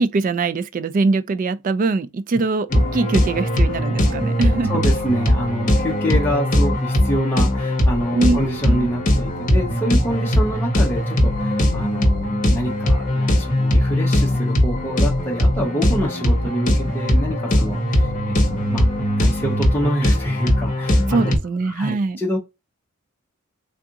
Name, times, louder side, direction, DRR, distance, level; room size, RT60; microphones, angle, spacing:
voice 1, 0.0-4.7 8.2-8.4 8.7-8.9 21.1-22.2, right 3 dB, 40° right, 0.3 m, -22 dB
sound 1, 2.7-21.4, left 1 dB, 40° left, 0.9 m, -19 dB
voice 2, 4.7-18.8 19.2-21.3 21.6-22.4, equal, 10° left, 0.7 m, -26 dB
3.6 x 2.5 x 2.7 m
head